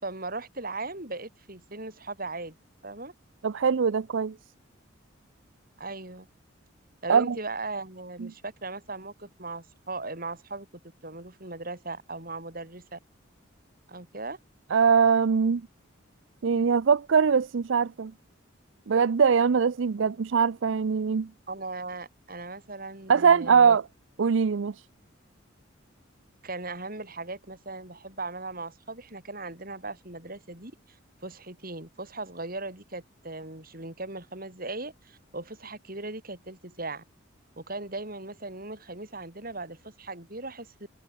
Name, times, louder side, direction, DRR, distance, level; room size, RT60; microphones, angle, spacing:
voice 1, 0.0-2.6 2.8-3.1 5.8-6.3 7.0-10.7 11.0-13.0 13.9-14.4 21.5-23.8 26.4-31.0 31.2-37.0 37.6-40.7, right 3 dB, 45° right, 5.8 m, -38 dB
voice 2, 3.4-4.3 7.1-7.4 8.2-8.3 14.7-15.6 16.4-18.1 18.9-21.3 23.1-23.8 24.2-24.7, right 6 dB, 65° right, 0.5 m, -22 dB
head